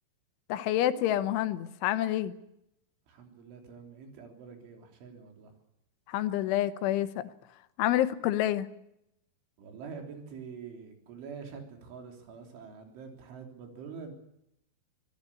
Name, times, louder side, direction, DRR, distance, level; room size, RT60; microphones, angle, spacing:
voice 1, 0.5-2.3 6.1-7.3 7.8-8.7, left 13 dB, 85° left, 11 dB, 3.6 m, -28 dB
voice 2, 3.1-5.5 9.6-14.1, right 6 dB, 85° right, 4 dB, 6.1 m, -45 dB
25.5 x 17.5 x 8.6 m, 0.81 s
omnidirectional pair, 5.4 m